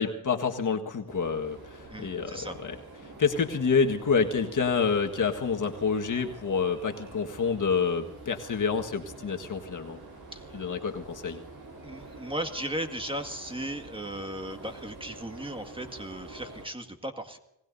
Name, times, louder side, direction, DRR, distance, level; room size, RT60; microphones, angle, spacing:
voice 1, 0.0-2.8 3.2-10.0 10.5-11.4, left 5 dB, 55° left, 4 dB, 1.7 m, -28 dB
sound 1, 1.1-16.7, right 2 dB, 60° right, 7.7 m, -47 dB
voice 2, 1.9-2.6 10.3-10.7 11.8-17.4, right 1 dB, 15° right, 6 dB, 2.0 m, -36 dB
26.5 x 19.5 x 2.7 m, 0.87 s
cardioid pair, 70°, 38 cm